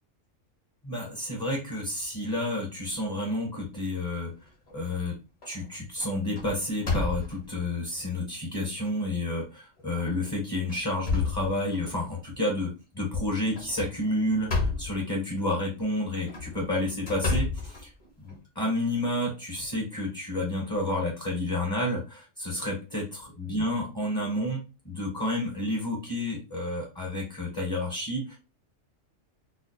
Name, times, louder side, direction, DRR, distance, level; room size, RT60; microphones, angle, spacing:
voice 1, 0.8-4.3 4.7-5.2 5.4-17.9 18.2-28.4, left 1 dB, 20° left, -1 dB, 0.8 m, -30 dB
sound 1, 4.4-5.0 5.4-5.7 6.0-7.6 8.3-8.4 8.8-8.9 9.9-10.1 10.6-12.0 13.5-15.0 16.1-18.4, left 4 dB, 40° left, 1.2 m, -31 dB
4.1 x 2.2 x 2.6 m, 0.30 s
omnidirectional pair, 1.3 m